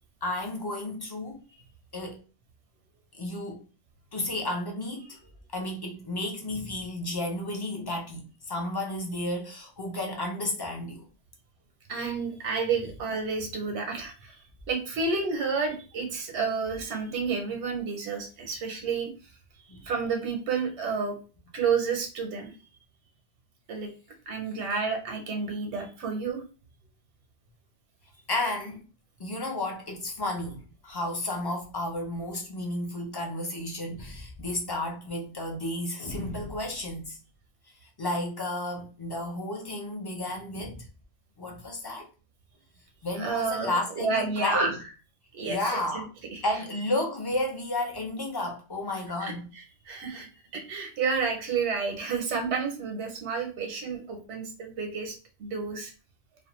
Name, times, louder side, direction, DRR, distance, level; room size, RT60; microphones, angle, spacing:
voice 1, 0.2-1.4 1.9-2.2 3.1-3.6 4.1-5.2 5.5-11.1 19.7-19.8 28.3-28.8 29.2-37.2 38.0-40.9 41.4-42.1 43.0-44.7 45.5-46.1 46.4-49.5, left 1 dB, 35° left, 0.4 m, -32 dB
voice 2, 11.9-14.4 14.7-19.1 19.8-21.2 21.5-22.5 23.7-23.9 24.3-26.4 43.2-44.7 45.3-46.4 49.2-50.3 50.5-55.9, right 5 dB, 85° right, 0.9 m, -30 dB
2.5 x 2.0 x 2.9 m
omnidirectional pair, 1.1 m